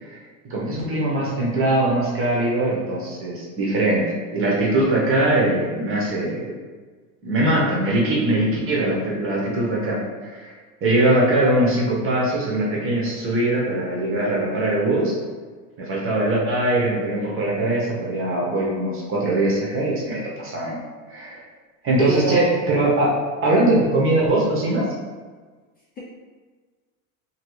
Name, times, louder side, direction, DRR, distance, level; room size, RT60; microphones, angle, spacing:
voice 1, 0.5-4.0 4.3-6.5 7.2-10.5 10.8-15.1 15.8-20.8 21.1-21.4 21.8-24.8, right 1 dB, 30° right, -4 dB, 1.0 m, -21 dB
voice 2, 22.0-22.6, equal, 20° left, -7 dB, 0.5 m, -25 dB
2.9 x 2.8 x 3.1 m, 1.4 s
supercardioid pair, 120°, 42 cm